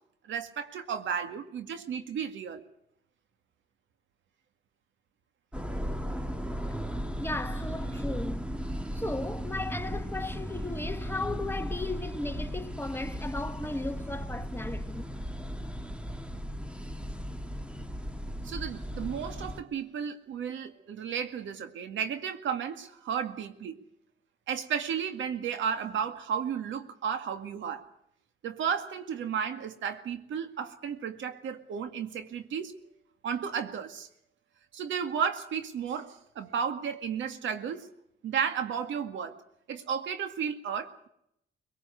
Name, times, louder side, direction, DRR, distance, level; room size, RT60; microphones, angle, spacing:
voice 1, 0.3-2.6 18.4-23.8 24.5-27.8 28.4-32.7 33.2-34.1 34.7-37.9 38.2-39.4 39.7-41.1, right 7 dB, 75° right, 2.1 m, -33 dB
sound 1, 5.5-19.6, equal, 5° right, 1.7 m, -36 dB
voice 2, 7.2-8.6 8.9-15.0, left 2 dB, 10° left, 1.5 m, -36 dB
23.0 x 18.0 x 8.2 m
cardioid pair, 90°, 20 cm